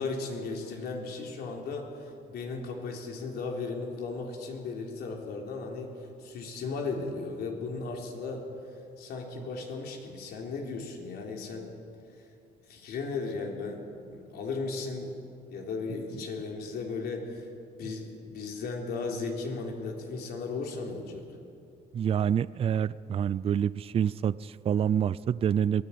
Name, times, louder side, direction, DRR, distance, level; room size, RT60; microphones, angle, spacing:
voice 1, 0.0-5.9 6.2-8.5 9.0-11.7 12.7-15.1 15.4-17.5 17.8-21.2, left 4 dB, 70° left, 1 dB, 3.8 m, -36 dB
voice 2, 21.9-25.8, right 8 dB, 35° right, 18 dB, 0.4 m, -27 dB
22.0 x 16.0 x 8.6 m, 2.5 s
cardioid pair, 110°, 17 cm